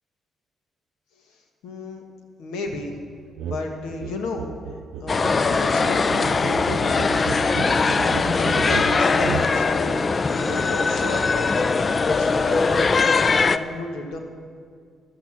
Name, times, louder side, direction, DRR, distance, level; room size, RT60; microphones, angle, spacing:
voice 1, 1.6-2.0 2.4-2.9 3.4-4.5 5.0-7.1 7.9-9.9 10.3-11.5 12.1-14.2, left 3 dB, 90° left, 3 dB, 1.4 m, -32 dB
sound 1, 3.4-3.6 3.9-9.5, right 7 dB, 80° right, 0.6 m, -33 dB
sound 2, 5.1-13.6, left 4 dB, 35° left, 0.4 m, -21 dB
11.5 x 8.6 x 7.1 m, 2.2 s
cardioid pair, 90°, 0 cm